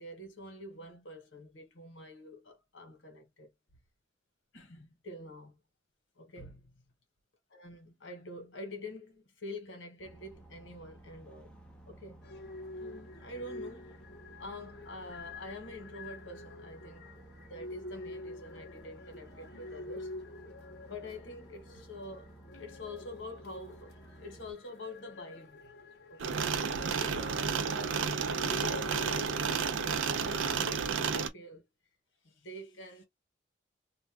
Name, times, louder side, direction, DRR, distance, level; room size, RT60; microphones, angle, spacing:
voice 1, 0.0-3.5 4.5-5.6 6.2-6.7 7.5-11.5 11.9-12.3 12.7-14.0 14.4-17.1 17.5-20.1 20.9-25.6 26.1-26.5 26.8-28.0 28.3-29.4 30.0-31.7 32.2-33.0, left 1 dB, 90° left, 1.2 m, -46 dB
sound 1, 10.0-24.5, right 1 dB, 5° left, 0.6 m, -55 dB
sound 2, 12.2-29.3, left 2 dB, 60° left, 0.9 m, -47 dB
sound 3, 26.2-31.3, right 6 dB, 90° right, 0.5 m, -31 dB
2.5 x 2.2 x 3.4 m
head